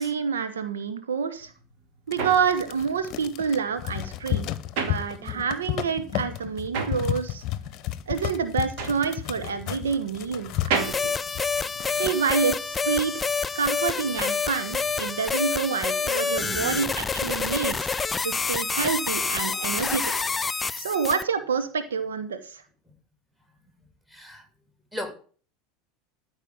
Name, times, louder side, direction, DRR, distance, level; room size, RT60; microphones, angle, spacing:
voice 1, 0.0-1.5 2.1-4.5 4.8-7.4 8.1-11.1 12.0-13.3 13.5-17.9 18.2-20.0 20.8-22.6, right 6 dB, 70° right, 1.1 m, -28 dB
sound 1, 1.4-5.7 6.0-12.2, right 5 dB, 55° right, 2.4 m, -34 dB
sound 2, 2.1-12.4 12.8-12.9 13.1-13.8 14.2-14.6, left 13 dB, 40° left, 0.9 m, -33 dB
sound 3, 10.7-21.2, left 5 dB, 15° left, 0.5 m, -28 dB
voice 2, 24.1-24.5 24.9-25.1, left 1 dB, 5° right, 3.0 m, -38 dB
14.0 x 4.8 x 8.6 m
figure-of-eight pair, 80°, 0 cm